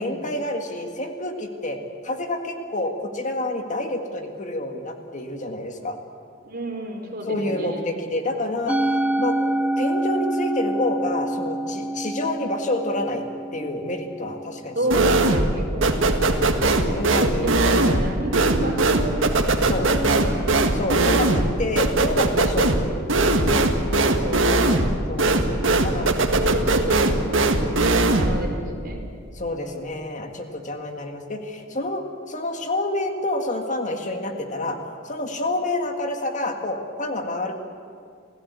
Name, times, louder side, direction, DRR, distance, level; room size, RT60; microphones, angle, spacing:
voice 1, 0.0-1.8 2.0-6.0 7.3-13.2 13.5-15.1 16.2-17.5 19.6-19.9 20.7-22.9 25.1-25.5 25.8-26.2 28.3-28.5 29.3-34.8 35.0-37.6, left 1 dB, 40° left, 4 dB, 2.0 m, -28 dB
voice 2, 6.4-7.8 9.0-9.1 14.7-16.1 16.9-19.2 19.7-20.8 24.0-24.9 25.7-27.8 28.1-29.0 29.6-29.9, right 1 dB, 50° right, 1 dB, 4.5 m, -31 dB
Musical instrument, 8.7-15.1, right 1 dB, 5° right, 0.7 m, -27 dB
sound 1, 14.9-15.6 15.8-28.4, right 2 dB, 70° right, 1.8 m, -20 dB
29.0 x 16.5 x 8.4 m, 2.3 s
head